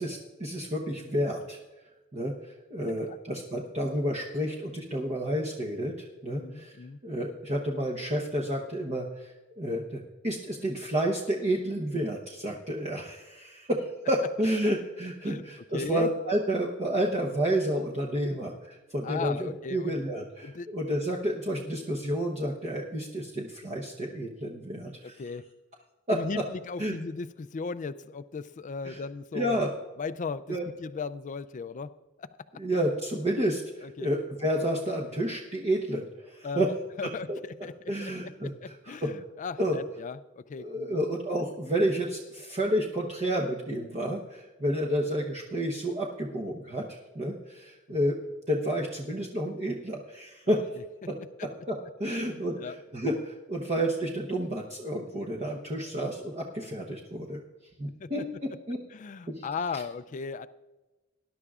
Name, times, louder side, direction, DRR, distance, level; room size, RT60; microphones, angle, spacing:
voice 1, 0.0-1.6 2.1-2.3 2.7-6.7 7.0-25.1 26.1-26.2 26.8-26.9 28.8-29.0 29.3-29.7 30.5-30.6 32.5-36.7 37.3-37.4 37.9-38.5 38.9-39.1 39.6-39.8 40.6-46.9 47.1-48.2 48.5-50.6 51.1-51.2 51.7-51.8 52.0-57.4 57.8-58.8 59.3-59.4, right 1 dB, 35° right, -2 dB, 0.9 m, -30 dB
voice 2, 6.3-7.0 15.2-15.4 15.7-16.1 18.3-18.4 19.0-20.0 20.4-20.7 21.5-21.7 25.0-25.5 26.1-29.6 30.0-31.9 32.2-32.6 33.8-34.1 36.4-41.0 47.9-48.1 50.4-50.6 52.1-52.8 53.6-53.7 58.0-58.1 58.9-60.5, left 5 dB, 40° left, 13 dB, 0.4 m, -37 dB
20.0 x 11.0 x 2.4 m, 1.2 s
head